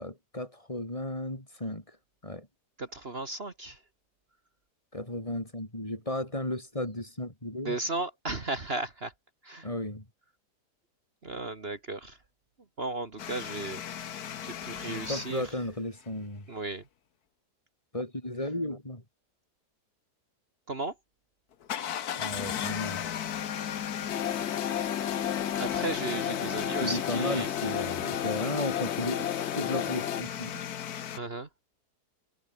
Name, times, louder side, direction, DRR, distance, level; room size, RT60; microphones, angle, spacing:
voice 1, 0.0-1.8 2.2-2.5 4.9-7.8 9.6-10.1 14.9-16.5 17.9-19.0 22.1-23.1 26.8-30.6, left 1 dB, 20° left, 5.6 m, -34 dB
voice 2, 2.8-3.8 7.7-9.1 9.4-9.7 11.2-12.2 12.8-13.8 14.4-15.4 16.5-16.8 20.7-20.9 25.6-27.5 31.2-31.5, right 2 dB, 40° right, 2.0 m, -35 dB
sound 1, 13.2-15.5 21.6-31.2, left 9 dB, 70° left, 1.6 m, -36 dB
sound 2, 24.1-30.2, left 10 dB, 55° left, 0.8 m, -33 dB
omnidirectional pair, 1.7 m